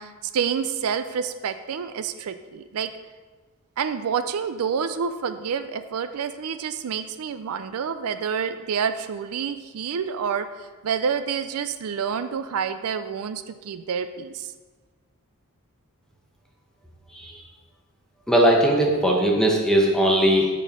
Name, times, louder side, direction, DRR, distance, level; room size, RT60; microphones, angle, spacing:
voice 1, 0.0-2.9 3.8-10.5 10.8-14.5, right 7 dB, 75° right, 10 dB, 0.4 m, -28 dB
voice 2, 18.3-20.5, right 1 dB, 5° left, -1 dB, 0.9 m, -19 dB
7.2 x 4.3 x 5.4 m, 1.4 s
head